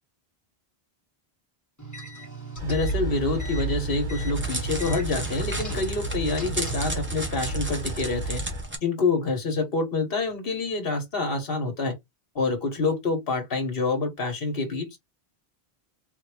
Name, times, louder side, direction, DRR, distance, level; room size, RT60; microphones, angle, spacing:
sound 1, 1.8-7.0, right 4 dB, 15° left, 1.5 m, -39 dB
voice 1, 2.6-8.4 8.8-11.9 12.3-15.0, left 3 dB, 65° left, 1.5 m, -27 dB
sound 2, 2.6-8.6, right 1 dB, 45° right, 1.8 m, -32 dB
Crackle, 3.8-8.8, right 1 dB, 10° right, 1.0 m, -35 dB
3.7 x 2.9 x 3.3 m
omnidirectional pair, 1.0 m